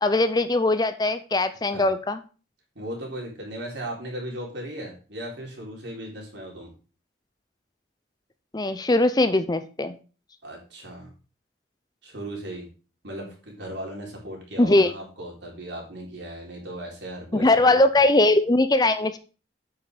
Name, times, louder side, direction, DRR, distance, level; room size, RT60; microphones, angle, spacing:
voice 1, 0.0-2.2 8.5-10.0 14.6-14.9 17.3-19.2, left 2 dB, 20° left, 11 dB, 0.5 m, -20 dB
voice 2, 2.8-6.7 10.4-11.1 12.0-12.7 13.0-17.8, right 1 dB, 70° right, -1 dB, 3.9 m, -37 dB
8.6 x 5.6 x 5.1 m, 0.35 s
head